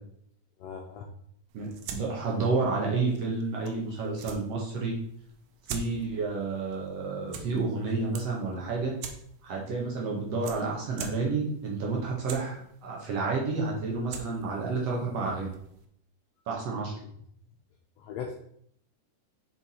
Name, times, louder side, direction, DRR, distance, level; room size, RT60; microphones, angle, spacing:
voice 1, 0.6-1.1 3.6-4.3 17.0-17.1 18.0-18.3, left 7 dB, 85° left, 1 dB, 1.5 m, -40 dB
voice 2, 1.5-4.9 5.7-8.9 9.4-15.5 16.5-16.9, right 4 dB, 65° right, -2 dB, 1.8 m, -30 dB
sound 1, 1.5-15.9, right 5 dB, 80° right, 2.3 m, -46 dB
5.7 x 4.5 x 4.1 m, 0.67 s
omnidirectional pair, 3.9 m